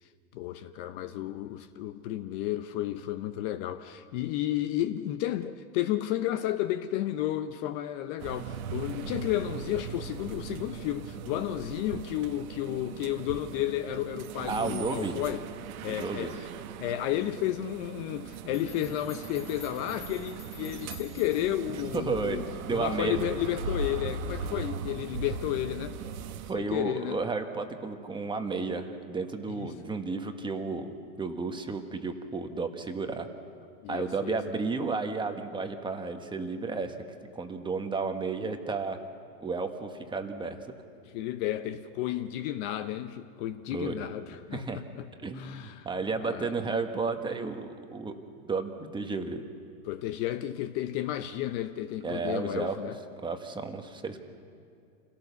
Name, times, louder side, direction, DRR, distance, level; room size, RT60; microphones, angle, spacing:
voice 1, 0.3-15.4 15.8-16.5 16.8-22.4 22.7-26.0 26.5-27.2 29.5-29.7 33.8-34.4 41.1-45.0 45.3-45.9 46.2-46.5 49.8-53.0, left 13 dB, 40° left, 10 dB, 0.8 m, -32 dB
sound 1, 8.2-26.5, right 5 dB, 70° right, 1.4 m, -39 dB
voice 2, 14.5-15.1 15.9-16.3 21.9-23.3 26.5-33.3 33.9-37.0 37.3-39.0 39.4-40.6 43.7-44.0 44.5-44.8 45.2-48.1 48.4-49.4 52.0-52.7 53.2-54.2, right 4 dB, 10° right, 5 dB, 1.3 m, -32 dB
sound 2, 18.5-21.7, left 8 dB, 80° left, 2.5 m, -50 dB
27.0 x 17.5 x 7.0 m, 2.4 s
hypercardioid pair, 130°, 44 cm